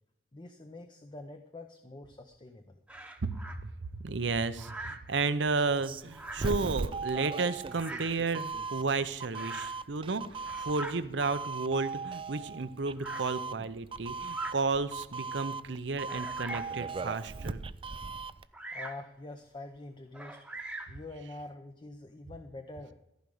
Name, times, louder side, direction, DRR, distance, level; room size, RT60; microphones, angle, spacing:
voice 1, 0.3-2.8 18.7-20.4 20.9-22.9, left 2 dB, 25° left, 6 dB, 0.7 m, -45 dB
Bird vocalization bird call bird song, 2.9-3.6 4.6-5.1 6.1-6.6 7.7-8.2 9.3-9.8 10.3-11.0 11.8-11.9 13.0-13.3 14.2-14.6 15.2-15.3 16.0-16.8 18.5-19.1 20.1-21.0, right 2 dB, 5° right, 1.0 m, -42 dB
voice 2, 3.9-17.6, right 4 dB, 80° right, 12 dB, 0.8 m, -32 dB
Doorbell, 5.7-18.5, right 4 dB, 30° right, 0.4 m, -38 dB
14.5 x 5.2 x 7.8 m, 0.85 s
head